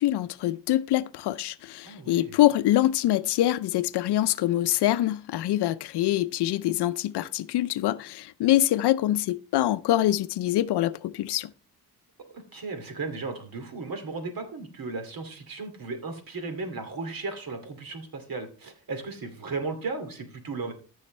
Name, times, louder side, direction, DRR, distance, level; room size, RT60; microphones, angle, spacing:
voice 1, 0.0-11.5, left 14 dB, 80° left, 0.6 m, -24 dB
voice 2, 1.9-2.4 12.5-20.7, right 3 dB, 60° right, 2.5 m, -35 dB
14.5 x 6.4 x 3.2 m
cardioid pair, 80°, 39 cm